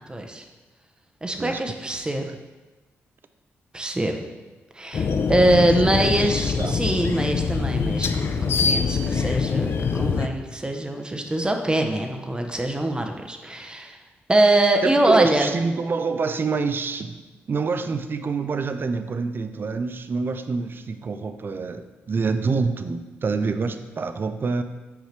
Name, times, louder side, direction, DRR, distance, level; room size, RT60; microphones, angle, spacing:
voice 1, 0.1-0.4 1.2-2.3 3.7-4.2 4.7-14.0 14.3-15.5, right 1 dB, 20° right, 4 dB, 0.8 m, -23 dB
sound 1, 4.9-10.3, left 5 dB, 55° left, 0.4 m, -24 dB
voice 2, 5.8-6.3 6.6-6.8 14.8-17.2 17.5-24.6, right 4 dB, 45° right, 9 dB, 0.5 m, -27 dB
6.6 x 4.8 x 3.3 m, 1.2 s
supercardioid pair, 55°, 5 cm